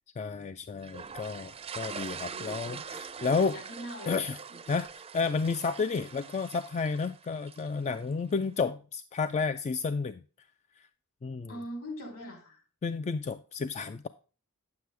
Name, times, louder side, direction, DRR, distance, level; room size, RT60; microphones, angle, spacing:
voice 1, 0.2-3.6 4.1-4.4 4.7-10.2 10.8-10.9 11.2-11.5 12.8-14.1, left 5 dB, 30° left, 11 dB, 0.3 m, -31 dB
sound 1, 0.8-8.1, right 6 dB, 25° right, 0.5 m, -43 dB
voice 2, 2.3-3.0 3.3-4.2 4.5-4.7 11.5-12.6, equal, 70° left, 3 dB, 3.6 m, -42 dB
9.4 x 7.8 x 3.3 m, 0.36 s
head